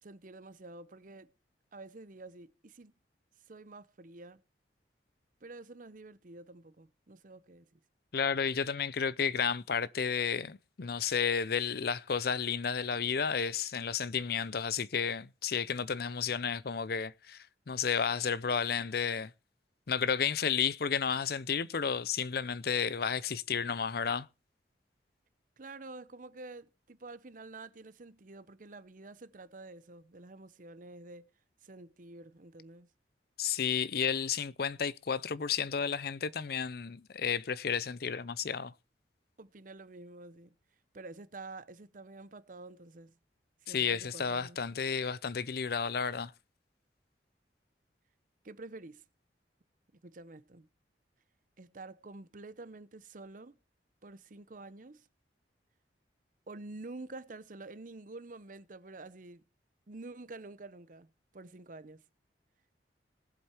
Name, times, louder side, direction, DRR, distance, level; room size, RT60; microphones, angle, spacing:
voice 1, 0.0-1.3 1.7-2.9 3.5-4.4 5.4-7.8 25.6-31.3 31.6-32.9 39.4-40.5 40.9-43.1 43.6-44.6 48.4-49.0 50.0-50.7 51.6-53.6 54.0-55.1 56.5-59.4 59.9-62.0, right 2 dB, 45° right, 0.8 m, -48 dB
voice 2, 8.1-19.3 19.9-24.3 33.4-38.7 43.7-46.3, left 6 dB, 60° left, 0.6 m, -32 dB
18.5 x 7.9 x 4.4 m
head